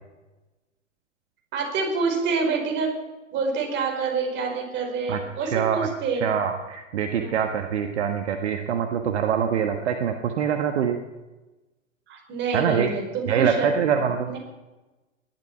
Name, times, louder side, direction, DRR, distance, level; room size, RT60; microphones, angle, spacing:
voice 1, 1.5-2.9 3.3-6.3 7.2-7.3 12.1-13.7 14.3-14.4, right 4 dB, 30° right, 1 dB, 5.2 m, -27 dB
voice 2, 5.1-5.9 6.2-11.0 12.5-12.9 13.3-14.3, right 8 dB, 60° right, 5 dB, 1.5 m, -24 dB
19.5 x 12.5 x 5.9 m, 1.1 s
figure-of-eight pair, 105°, 38 cm